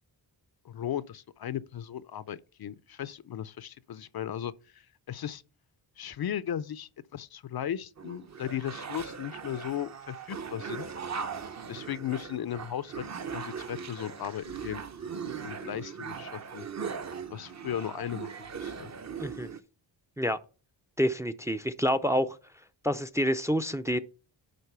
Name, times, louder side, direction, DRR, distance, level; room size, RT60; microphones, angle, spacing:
voice 1, 0.6-5.4 6.0-10.9 11.7-13.0 13.3-14.8 15.4-16.7 17.3-18.9, left 10 dB, 55° left, 0.5 m, -36 dB
sound 1, 8.0-19.6, right 6 dB, 40° right, 0.7 m, -39 dB
voice 2, 21.0-22.4 22.8-24.0, equal, 5° right, 0.5 m, -27 dB
10.5 x 3.9 x 6.7 m
wide cardioid pair, 130°, 45 cm